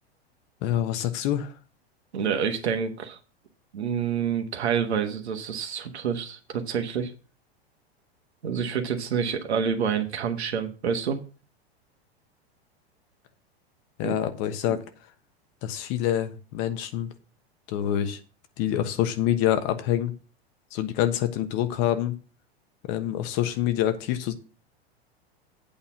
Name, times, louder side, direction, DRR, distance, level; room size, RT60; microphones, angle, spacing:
voice 1, 0.6-1.5 14.0-14.8 15.6-17.1 17.7-18.2 18.6-20.1 20.7-22.2 22.9-24.3, left 11 dB, 50° left, 1.3 m, -26 dB
voice 2, 2.1-3.2 3.7-7.1 8.4-11.2 14.0-14.1 14.7-14.8, right 7 dB, 80° right, 1.4 m, -28 dB
8.6 x 4.2 x 7.3 m
hypercardioid pair, 100°, 32 cm